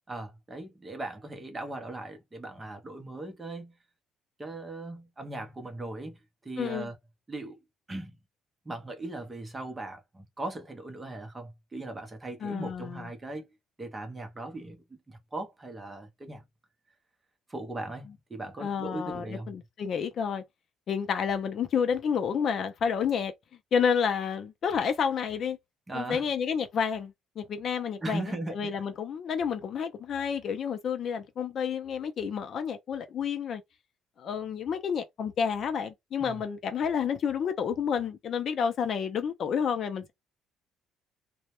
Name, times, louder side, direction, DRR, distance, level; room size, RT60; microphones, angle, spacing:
voice 1, 0.1-3.7 4.4-7.0 7.3-7.6 7.9-8.2 8.6-16.4 17.5-19.5 25.9-26.2 28.0-28.7 36.2-36.4, right 2 dB, 15° right, 0.6 m, -39 dB
voice 2, 6.6-6.9 12.4-13.1 18.6-20.4 20.9-23.3 23.7-25.6 25.9-33.6 34.2-40.1, left 7 dB, 45° left, 0.4 m, -30 dB
2.1 x 2.0 x 2.8 m
cardioid pair, 160°, 0 cm